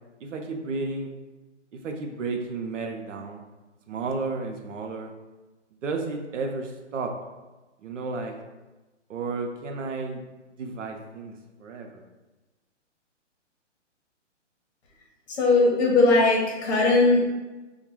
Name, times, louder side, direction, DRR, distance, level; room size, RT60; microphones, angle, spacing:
voice 1, 0.2-1.1 1.7-3.4 3.9-5.1 5.8-7.1 7.8-8.3 9.1-10.2 10.6-11.3 11.6-12.0, right 3 dB, 85° right, 3 dB, 0.6 m, -32 dB
voice 2, 15.3-17.3, left 3 dB, 65° left, -2 dB, 0.9 m, -19 dB
2.2 x 2.2 x 3.0 m, 1.1 s
hypercardioid pair, 150°, 36 cm